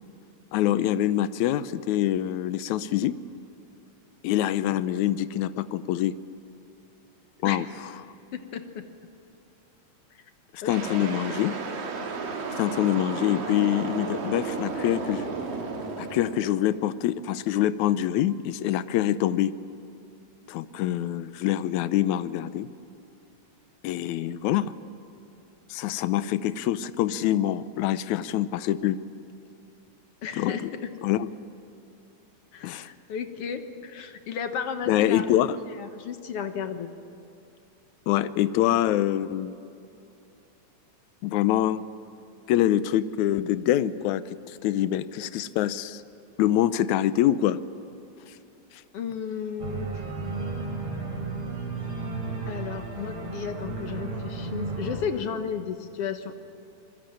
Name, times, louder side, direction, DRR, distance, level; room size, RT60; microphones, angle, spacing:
voice 1, 0.5-3.2 4.2-6.1 7.4-7.7 10.5-11.6 12.6-15.3 16.0-19.5 20.5-22.7 23.8-24.7 25.7-29.0 30.4-30.6 31.0-31.3 32.6-32.9 34.9-35.6 38.1-39.5 41.2-41.8 42.5-46.0 46.4-47.6, left 12 dB, 75° left, 14 dB, 1.9 m, -25 dB
voice 2, 8.3-8.8 10.1-10.2 10.6-11.1 30.2-30.9 32.5-35.3 35.7-36.9 48.9-50.0 52.5-56.3, left 7 dB, 60° left, 8 dB, 1.8 m, -34 dB
sound 1, 10.7-17.0, right 4 dB, 90° right, 4.2 m, -33 dB
Organ, 49.6-55.0, right 3 dB, 45° right, 4.3 m, -33 dB
26.5 x 21.5 x 8.9 m, 2.8 s
omnidirectional pair, 3.8 m